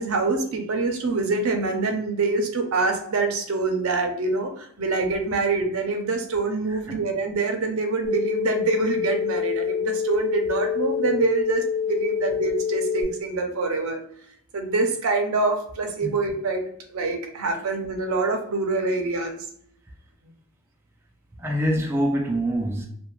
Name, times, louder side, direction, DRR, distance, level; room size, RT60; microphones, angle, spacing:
voice 1, 0.0-14.0 14.5-16.6 16.9-19.4, right 3 dB, 75° right, 0.5 m, -25 dB
voice 2, 6.7-7.0 16.0-16.1 21.4-22.9, equal, 10° right, 0.3 m, -25 dB
sound 1, 8.0-13.0, left 7 dB, 55° left, 0.9 m, -26 dB
2.4 x 2.2 x 3.0 m
head